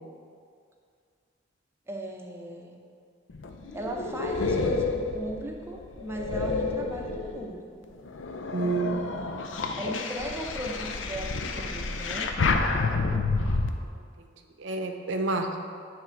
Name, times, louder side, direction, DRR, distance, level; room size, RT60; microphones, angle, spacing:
voice 1, 1.9-2.8 3.7-7.8 9.7-12.4, right 1 dB, 15° right, 0 dB, 0.7 m, -37 dB
sound 1, 3.3-7.5 8.1-13.7, left 3 dB, 90° left, 0.6 m, -29 dB
voice 2, 8.5-9.2 13.5-13.7 14.6-15.6, right 3 dB, 70° right, 5 dB, 0.7 m, -29 dB
9.4 x 3.6 x 5.8 m, 2.2 s
head